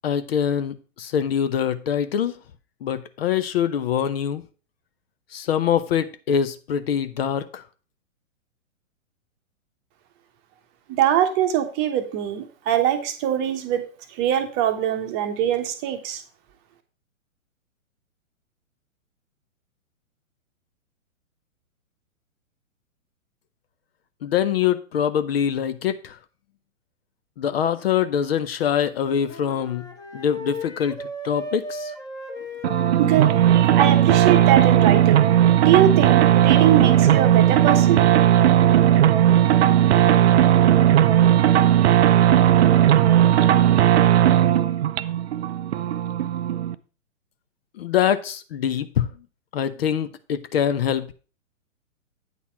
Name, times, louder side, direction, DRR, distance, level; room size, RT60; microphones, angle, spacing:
voice 1, 0.0-2.3 2.8-4.4 5.3-7.6 24.2-26.2 27.4-29.8 30.1-31.9 47.8-49.1 49.5-51.1, left 8 dB, 50° left, 12 dB, 0.7 m, -24 dB
voice 2, 10.9-16.2 33.0-35.3 35.6-38.0, right 10 dB, 25° right, 7 dB, 0.9 m, -22 dB
Wind instrument woodwind instrument, 29.0-34.5, left 1 dB, 10° left, 1.0 m, -37 dB
sound 1, 32.6-46.7, right 11 dB, 55° right, 0.5 m, -17 dB
8.9 x 4.2 x 5.7 m, 0.36 s
figure-of-eight pair, 115°, 40 cm